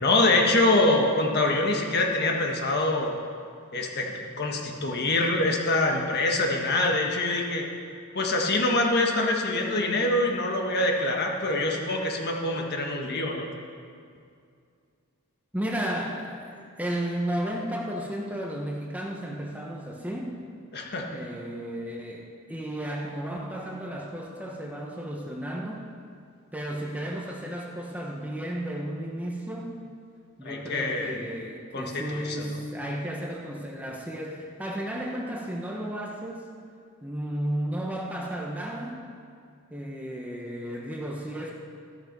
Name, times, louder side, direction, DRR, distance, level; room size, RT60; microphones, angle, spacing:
voice 1, 0.0-3.1 3.7-7.6 8.2-13.5 20.7-21.2 30.4-31.2 31.7-32.4, left 2 dB, 45° left, 1 dB, 1.6 m, -25 dB
voice 2, 15.5-20.4 21.1-25.9 26.5-29.8 30.4-36.5 37.0-39.0 39.7-41.5, right 1 dB, 5° right, -1 dB, 1.1 m, -33 dB
13.5 x 12.5 x 5.4 m, 2.3 s
head